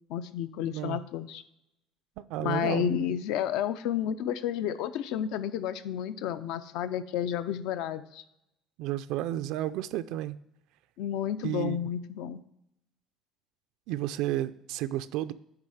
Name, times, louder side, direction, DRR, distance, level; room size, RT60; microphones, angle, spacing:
voice 1, 0.1-1.4 2.4-8.2 11.0-12.4, left 10 dB, 80° left, 12 dB, 0.5 m, -31 dB
voice 2, 0.6-1.0 2.2-3.0 8.8-10.4 11.4-11.8 13.9-15.3, right 13 dB, 75° right, 13 dB, 0.4 m, -32 dB
9.7 x 3.5 x 6.4 m, 0.81 s
cardioid pair, 140°, 0 cm